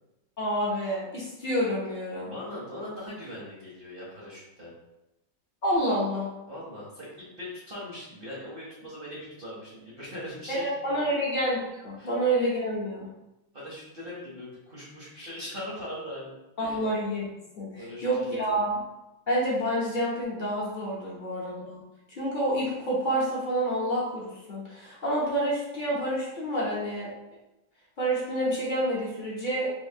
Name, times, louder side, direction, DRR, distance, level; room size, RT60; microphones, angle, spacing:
voice 1, 0.4-2.3 5.6-6.3 10.5-13.1 16.6-18.8 19.3-21.8 22.2-27.1 28.0-29.7, right 1 dB, 40° left, -6 dB, 0.7 m, -28 dB
voice 2, 2.2-4.7 6.5-7.1 7.4-11.0 12.0-12.1 13.5-16.8 17.7-18.6, left 1 dB, 45° right, -7 dB, 0.8 m, -40 dB
4.1 x 2.7 x 2.7 m, 0.94 s
omnidirectional pair, 2.0 m